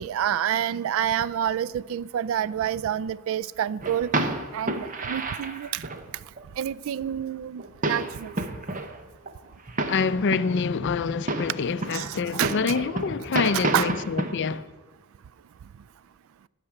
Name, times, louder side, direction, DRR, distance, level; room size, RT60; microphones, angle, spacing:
voice 1, 0.0-4.1 4.5-5.9 6.6-8.3 11.9-12.5 13.5-13.9, right 10 dB, 65° right, 0.3 m, -28 dB
sound 1, 3.8-6.1 6.4-6.5 6.7-6.8 7.2-7.3 7.6-9.0 9.3-9.4 9.7-11.0 11.3-14.5, right 2 dB, 35° right, 0.9 m, -30 dB
voice 2, 9.9-14.7, left 5 dB, 55° left, 0.5 m, -26 dB
13.0 x 6.6 x 8.8 m
head